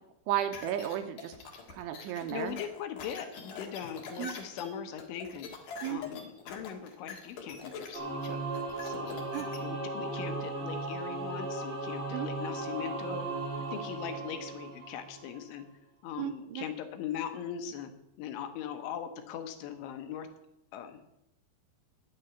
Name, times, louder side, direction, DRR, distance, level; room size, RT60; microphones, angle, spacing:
voice 1, 0.3-1.3 1.7-2.6 4.2-4.3 5.8-6.0 9.3-9.5 12.1-12.3 16.2-16.7, right 12 dB, 80° right, 8 dB, 3.1 m, -34 dB
sound 1, 0.5-9.6, left 5 dB, 55° left, 2.6 m, -44 dB
voice 2, 2.1-5.5 5.9-8.4 8.8-9.2 9.6-13.3 13.7-15.6 16.0-17.9 18.2-20.3 20.7-21.0, left 8 dB, 75° left, 7 dB, 3.2 m, -40 dB
Singing / Musical instrument, 7.9-15.4, right 2 dB, 25° right, 1.6 m, -37 dB
13.0 x 6.9 x 9.0 m, 0.84 s
omnidirectional pair, 5.9 m